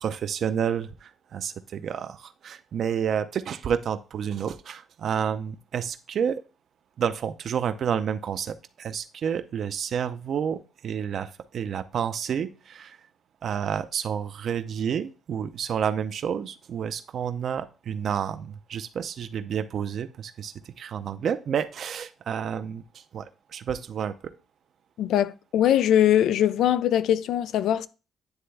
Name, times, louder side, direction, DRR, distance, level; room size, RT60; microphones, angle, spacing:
voice 1, 0.0-6.4 7.0-13.0 13.4-24.1, right 8 dB, 60° right, 0.5 m, -30 dB
voice 2, 25.0-27.9, left 11 dB, 80° left, 0.3 m, -21 dB
9.6 x 3.4 x 3.3 m
cardioid pair, 90°, 0 cm